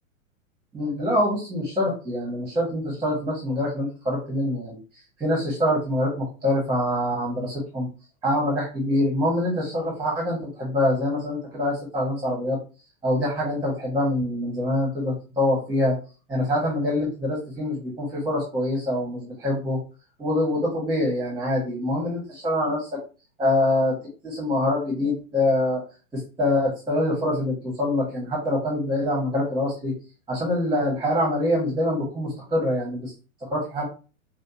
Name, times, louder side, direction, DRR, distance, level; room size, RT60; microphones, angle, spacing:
voice 1, 0.7-4.8 5.2-7.9 8.2-12.6 13.0-16.0 16.3-19.8 20.2-23.0 23.4-23.9 24.2-25.8 26.1-29.9 30.3-33.1 33.5-33.8, left 1 dB, 10° right, -3 dB, 1.6 m, -25 dB
5.6 x 2.6 x 2.9 m, 0.34 s
hypercardioid pair, 125°, 41 cm